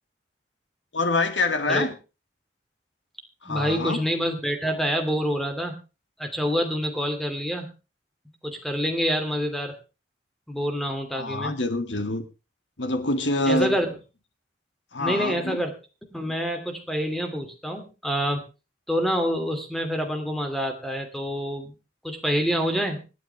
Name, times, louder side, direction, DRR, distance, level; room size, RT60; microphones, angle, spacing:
voice 1, 0.9-1.9 3.4-4.0 11.1-12.2 12.8-13.8 14.9-15.6, left 2 dB, 85° left, 8 dB, 2.3 m, -25 dB
voice 2, 3.5-5.8 6.2-7.7 8.4-9.8 10.5-11.5 13.5-13.9 15.0-15.7 16.1-18.4 18.9-21.7 22.0-23.0, equal, ahead, 6 dB, 2.7 m, -27 dB
25.5 x 9.2 x 3.4 m, 0.31 s
head